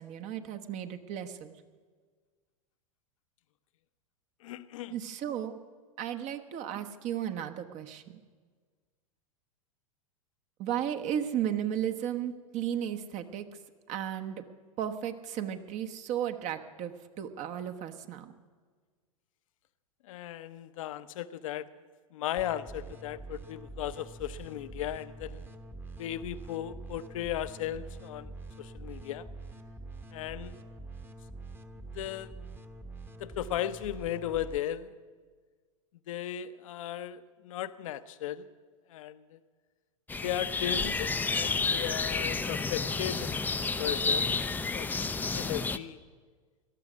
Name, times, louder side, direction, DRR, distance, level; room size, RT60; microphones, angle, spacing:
voice 1, 0.0-1.5 4.9-5.6 6.0-8.2 10.6-13.5 13.9-14.4 14.8-18.3, right 10 dB, 40° right, 7 dB, 1.2 m, -34 dB
voice 2, 4.4-5.0 20.0-21.7 22.1-25.5 26.0-28.3 28.6-29.3 30.1-30.6 31.9-32.4 33.2-34.9 36.1-38.5 38.9-39.4 40.2-43.3 43.8-44.4 44.7-46.0, left 11 dB, 65° left, 14 dB, 0.8 m, -36 dB
sound 1, 22.4-34.6, right 2 dB, 10° right, 1.1 m, -45 dB
sound 2, 40.1-45.8, left 4 dB, 10° left, 0.5 m, -30 dB
18.0 x 12.5 x 6.2 m, 1.5 s
hypercardioid pair, 100°, 18 cm